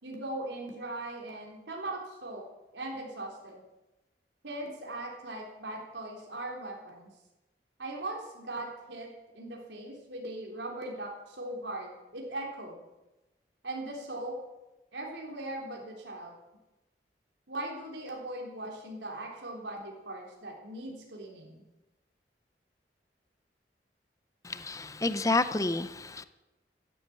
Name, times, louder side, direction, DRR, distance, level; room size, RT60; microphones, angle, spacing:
voice 1, 0.0-2.4 2.7-3.6 4.4-7.1 7.8-12.8 13.6-14.4 14.9-16.4 17.5-21.6, right 1 dB, 90° right, -1 dB, 3.5 m, -39 dB
voice 2, 24.4-26.2, left 2 dB, 20° left, 12 dB, 0.7 m, -29 dB
15.0 x 9.5 x 8.5 m, 1.0 s
head